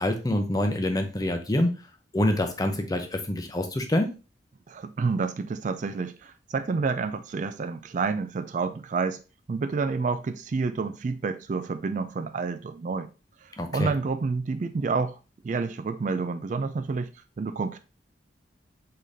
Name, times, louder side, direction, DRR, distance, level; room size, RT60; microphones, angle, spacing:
voice 1, 0.0-1.7 2.1-4.1 13.6-13.9, left 1 dB, 20° left, 0.6 m, -26 dB
voice 2, 4.7-9.2 9.5-13.1 13.4-15.2 15.4-17.1 17.4-17.8, right 4 dB, 45° right, 0.3 m, -29 dB
4.9 x 3.8 x 2.7 m
head